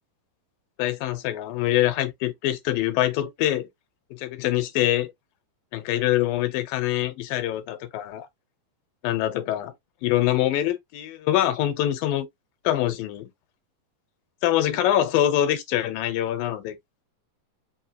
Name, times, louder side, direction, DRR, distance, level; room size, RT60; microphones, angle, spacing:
voice 1, 0.8-3.7 4.1-5.1 5.7-8.3 9.0-9.7 10.0-12.3 12.6-13.3 14.4-16.8, left 13 dB, 90° left, 2.5 m, -24 dB
5.5 x 2.9 x 2.8 m
omnidirectional pair, 4.0 m